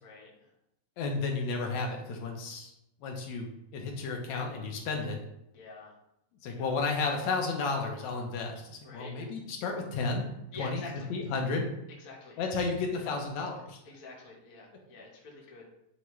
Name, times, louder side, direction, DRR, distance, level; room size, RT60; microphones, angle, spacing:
voice 1, 0.0-0.5 5.5-5.9 6.5-6.8 8.8-9.3 10.5-11.3 12.0-12.7 13.0-13.2 13.8-15.7, left 3 dB, 85° left, -3 dB, 0.7 m, -48 dB
voice 2, 1.0-2.7 3.0-5.2 6.4-10.3 10.6-10.8 11.1-11.7 12.4-13.8, left 4 dB, 70° left, 2 dB, 1.8 m, -32 dB
9.2 x 3.4 x 3.1 m, 0.81 s
omnidirectional pair, 3.8 m